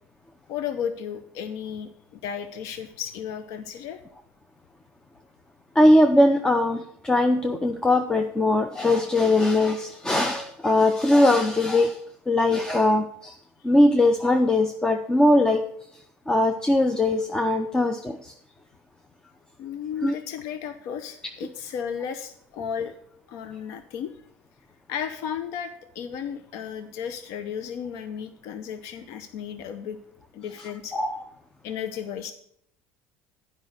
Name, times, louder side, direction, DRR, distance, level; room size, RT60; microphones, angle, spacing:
voice 1, 0.5-4.0 19.6-22.9 23.3-24.1 24.9-30.0 30.3-30.9 31.6-32.3, left 8 dB, 70° left, 9 dB, 0.7 m, -34 dB
voice 2, 5.7-12.0 12.3-13.4 13.6-15.6 16.3-18.3 20.0-20.1 30.9-31.2, left 1 dB, 15° left, 6 dB, 0.6 m, -20 dB
9.3 x 5.3 x 6.5 m, 0.70 s
supercardioid pair, 115°, 5 cm